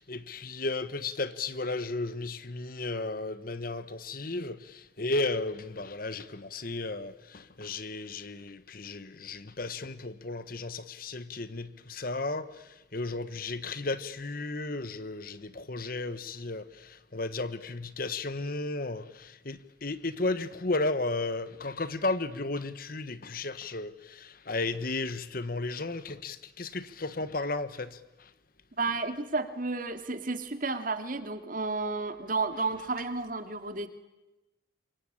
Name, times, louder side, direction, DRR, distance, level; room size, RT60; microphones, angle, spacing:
voice 1, 0.0-28.3, left 2 dB, 45° left, 1.2 m, -34 dB
voice 2, 28.8-33.9, right 3 dB, 45° right, 2.3 m, -32 dB
27.5 x 24.0 x 8.7 m
head